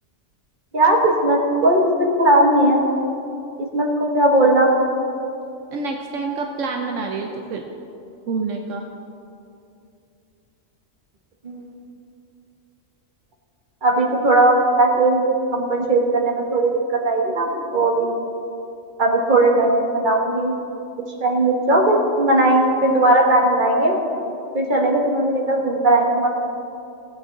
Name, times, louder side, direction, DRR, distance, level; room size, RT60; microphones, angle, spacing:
voice 1, 0.7-2.8 3.6-4.7 11.4-11.6 13.8-18.1 19.0-20.5 21.2-24.0 24.5-26.3, right 2 dB, 40° right, 0 dB, 1.6 m, -18 dB
voice 2, 5.7-7.7 8.3-8.9, right 4 dB, 75° right, 3 dB, 1.1 m, -27 dB
17.5 x 8.4 x 4.0 m, 2.7 s
omnidirectional pair, 1.3 m